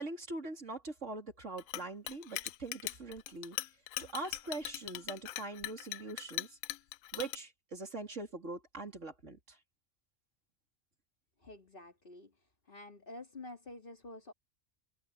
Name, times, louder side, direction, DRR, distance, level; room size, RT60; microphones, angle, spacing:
voice 1, 0.0-3.6 4.0-6.6 7.1-9.6, right 3 dB, 70° right, 4.0 m, -42 dB
Chink clink, 1.6-7.4, left 14 dB, 90° left, 1.0 m, -40 dB
voice 2, 11.4-14.3, left 2 dB, 40° left, 3.0 m, -49 dB
omnidirectional pair, 1.3 m